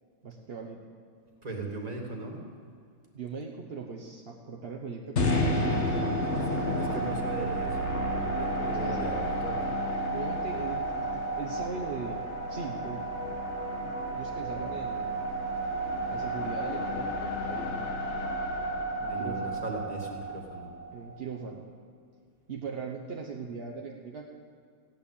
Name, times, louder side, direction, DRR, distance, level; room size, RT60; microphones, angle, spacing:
voice 1, 0.2-0.8 3.1-6.3 8.7-9.1 10.1-12.2 12.5-13.0 13.8-15.2 16.1-18.0 19.0-19.6 20.9-21.6 22.5-24.3, right 5 dB, 40° right, 0 dB, 1.0 m, -40 dB
voice 2, 1.4-2.4 6.3-6.5 6.7-9.8 19.0-20.7, right 2 dB, 20° right, 0 dB, 2.5 m, -38 dB
sound 1, 5.2-21.3, equal, 40° left, 1.4 m, -31 dB
16.0 x 10.5 x 8.6 m, 2.3 s
omnidirectional pair, 2.2 m